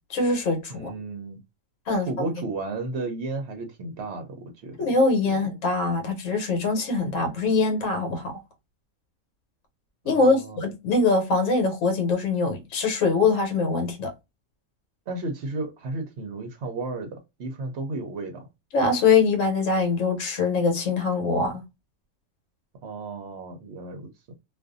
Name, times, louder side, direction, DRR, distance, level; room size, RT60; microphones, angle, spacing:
voice 1, 0.1-0.9 1.9-2.3 4.8-8.3 10.0-14.1 18.7-21.6, left 3 dB, 65° left, 1.2 m, -23 dB
voice 2, 0.7-1.4 1.9-4.9 5.3-5.5 10.0-10.6 15.1-18.5 22.8-24.1, right 3 dB, 60° right, 0.8 m, -33 dB
2.5 x 2.3 x 2.5 m
omnidirectional pair, 1.5 m